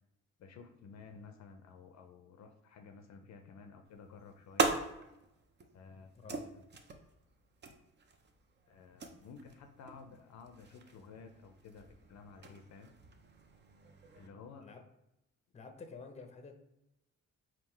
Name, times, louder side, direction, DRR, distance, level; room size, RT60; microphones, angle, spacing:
voice 1, 0.4-4.8 5.7-6.1 6.5-6.6 7.6-7.8 8.7-13.0 14.1-14.7, left 5 dB, 65° left, 6 dB, 0.6 m, -53 dB
sound 1, 3.8-14.3, right 4 dB, 35° right, 0.6 m, -41 dB
voice 2, 6.1-6.4 14.6-14.8 15.5-16.6, left 4 dB, 20° left, 5 dB, 0.6 m, -49 dB
3.7 x 2.4 x 4.5 m, 0.87 s
cardioid pair, 90°, 30 cm